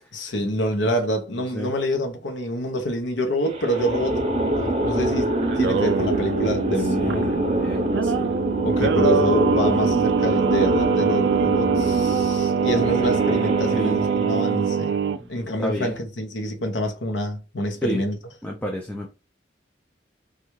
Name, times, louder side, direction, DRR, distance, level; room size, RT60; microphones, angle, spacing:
voice 1, 0.1-4.2 4.6-7.4 8.6-15.0 15.3-18.2, equal, 75° left, 0.8 m, -26 dB
sound 1, 3.5-14.6, right 1 dB, 30° right, 0.7 m, -25 dB
Singing, 5.4-15.2, right 6 dB, 65° right, 0.3 m, -23 dB
voice 2, 6.8-7.2 7.6-8.3 13.7-14.0 15.2-15.3 15.6-16.0 17.8-18.0 18.4-19.1, equal, 10° left, 0.4 m, -31 dB
3.3 x 2.3 x 3.0 m
head